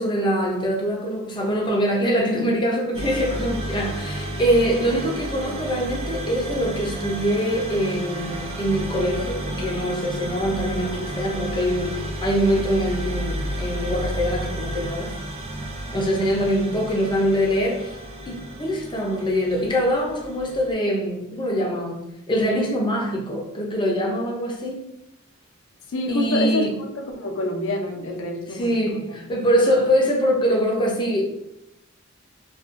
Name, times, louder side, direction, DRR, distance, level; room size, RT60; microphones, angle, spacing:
voice 1, 0.0-15.2 15.9-17.9 18.3-24.9 26.1-26.7 28.5-31.2, equal, 20° left, 0.5 m, -23 dB
sound 1, 2.9-20.7, right 1 dB, 30° right, 0.3 m, -32 dB
voice 2, 25.9-29.0, left 1 dB, 70° left, 0.5 m, -27 dB
2.5 x 2.2 x 2.5 m
head